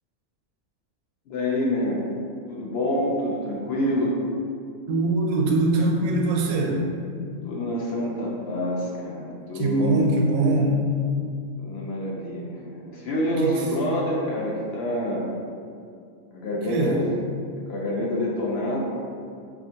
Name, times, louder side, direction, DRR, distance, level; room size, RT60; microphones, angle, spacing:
voice 1, 1.3-2.1 2.5-4.1 7.4-10.1 11.6-15.3 16.3-17.0 17.7-18.8, left 1 dB, 65° left, -3 dB, 0.6 m, -27 dB
voice 2, 4.9-6.9 9.5-10.9 13.4-13.7 16.7-17.0, right 2 dB, 80° right, 0 dB, 1.0 m, -22 dB
4.1 x 2.5 x 2.8 m, 2.4 s
omnidirectional pair, 1.4 m